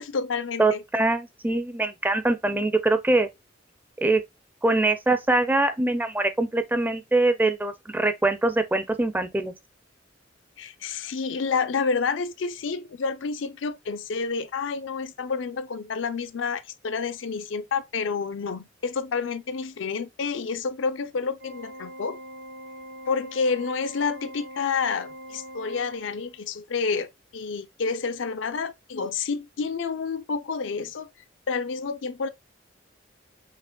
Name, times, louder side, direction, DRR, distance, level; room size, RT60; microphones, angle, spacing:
voice 1, 0.0-0.8 10.6-22.2 23.1-31.1 31.5-32.3, left 5 dB, 75° left, 0.5 m, -29 dB
voice 2, 0.6-3.3 4.0-4.2 4.6-9.5, right 2 dB, 10° right, 0.4 m, -23 dB
Organ, 21.4-26.5, equal, 75° right, 1.3 m, -42 dB
5.9 x 2.8 x 2.2 m
head